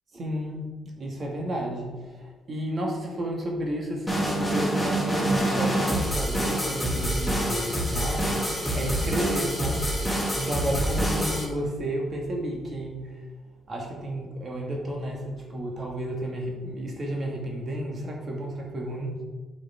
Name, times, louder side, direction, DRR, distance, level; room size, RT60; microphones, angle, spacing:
voice 1, 0.1-0.6 0.9-13.2 13.7-19.2, right 1 dB, 45° right, 0 dB, 1.9 m, -32 dB
sound 1, 4.1-11.4, right 1 dB, ahead, 2.4 m, -26 dB
9.3 x 5.2 x 3.5 m, 1.3 s
cardioid pair, 90°, 0 cm